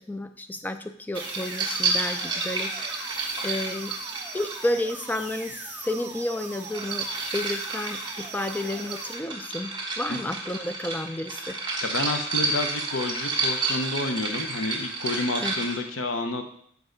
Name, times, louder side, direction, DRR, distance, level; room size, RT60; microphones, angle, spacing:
voice 1, 0.0-3.2 3.4-3.9 4.3-7.1 7.3-11.6 15.4-15.5, left 1 dB, 10° left, 9 dB, 0.3 m, -31 dB
sound 1, 1.1-9.1, right 4 dB, 10° right, 0.7 m, -40 dB
sound 2, 1.1-5.1 6.3-15.8, right 3 dB, 25° right, 1.2 m, -30 dB
voice 2, 9.8-10.2 11.8-16.4, left 2 dB, 85° left, 6 dB, 0.8 m, -30 dB
7.3 x 4.7 x 3.9 m, 0.66 s
head